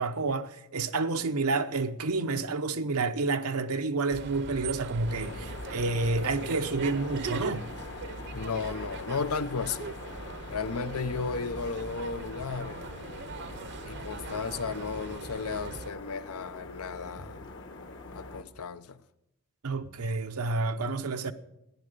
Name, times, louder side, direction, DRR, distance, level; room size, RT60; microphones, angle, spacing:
voice 1, 0.0-7.7 19.6-21.3, right 3 dB, 85° right, 0.8 m, -29 dB
sound 1, 4.1-15.9, right 4 dB, 55° right, 0.7 m, -41 dB
sound 2, 5.1-18.4, left 3 dB, 60° left, 1.3 m, -43 dB
voice 2, 8.3-10.0 10.5-12.8 13.8-17.4 18.1-19.0, left 5 dB, 85° left, 0.7 m, -34 dB
14.5 x 10.5 x 6.6 m
head